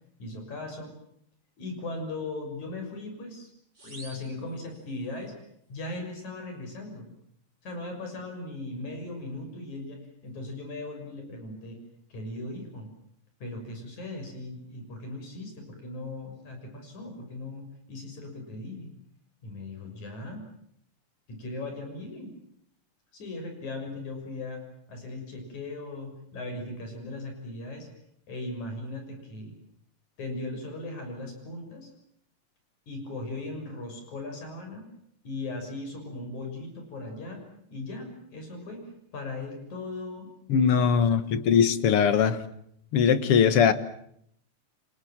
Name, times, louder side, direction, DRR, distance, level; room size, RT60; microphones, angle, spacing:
voice 1, 0.2-0.9 1.6-3.5 3.8-5.3 5.7-7.1 7.6-11.8 12.1-12.9 13.4-18.9 19.4-20.4 21.3-22.3 23.1-24.6 24.9-27.9 28.3-29.5 30.2-31.9 32.9-34.9 35.2-37.4 37.7-40.3 40.6-41.2, left 2 dB, 80° left, 4 dB, 7.8 m, -38 dB
sound 1, 3.7-5.3, right 2 dB, 30° right, 6.9 m, -50 dB
voice 2, 40.5-42.4 42.9-43.7, left 7 dB, 55° left, 13 dB, 2.2 m, -21 dB
29.0 x 25.0 x 7.4 m, 0.71 s
omnidirectional pair, 3.3 m